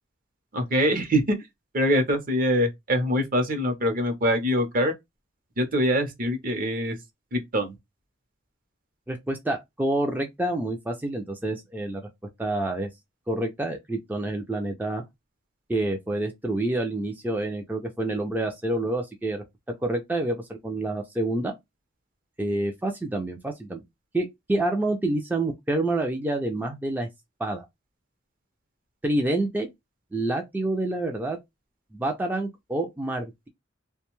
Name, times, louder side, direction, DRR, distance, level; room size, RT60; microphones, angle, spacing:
voice 1, 0.5-1.2 1.7-4.9 5.6-7.0 7.3-7.7, equal, 50° right, 0.7 m, -24 dB
voice 2, 9.1-12.0 12.4-12.9 13.3-15.0 15.7-19.4 19.8-20.4 20.6-21.5 22.4-23.8 24.1-27.1 27.4-27.7 29.0-29.7 30.1-31.4 31.9-33.5, right 2 dB, 10° right, 0.4 m, -28 dB
2.5 x 2.2 x 2.9 m
head